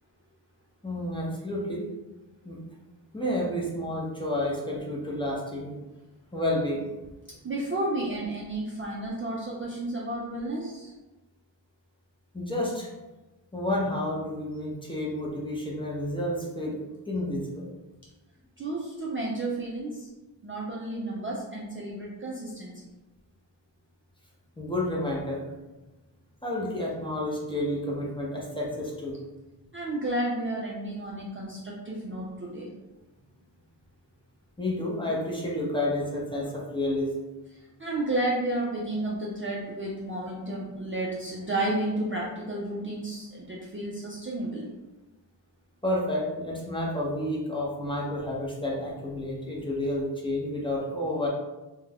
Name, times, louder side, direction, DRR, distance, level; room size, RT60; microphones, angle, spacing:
voice 1, 0.8-1.8 2.4-2.6 3.1-5.7 6.3-7.0 12.3-12.9 13.5-17.7 24.6-25.4 26.4-29.2 34.6-37.1 45.8-51.3, left 1 dB, 10° left, -4 dB, 0.6 m, -30 dB
voice 2, 7.4-10.9 18.6-20.1 20.4-22.7 29.7-32.7 37.8-44.7, right 1 dB, 30° right, -4 dB, 0.4 m, -32 dB
2.4 x 2.2 x 3.3 m, 1.1 s
wide cardioid pair, 90°, 45 cm